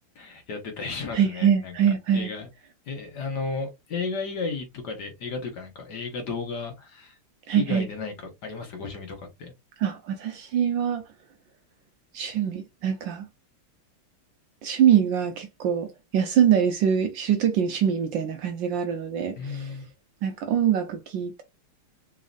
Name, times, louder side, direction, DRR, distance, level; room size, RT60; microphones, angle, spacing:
voice 1, 0.1-1.8 2.1-2.5 2.9-7.2 7.6-9.5 19.4-19.9, left 4 dB, 55° left, 1.5 m, -34 dB
voice 2, 1.1-2.3 7.5-7.9 9.8-11.0 12.1-13.3 14.6-15.9 16.1-19.7 20.2-21.4, right 8 dB, 75° right, 1.2 m, -24 dB
4.0 x 3.7 x 2.5 m
omnidirectional pair, 2.4 m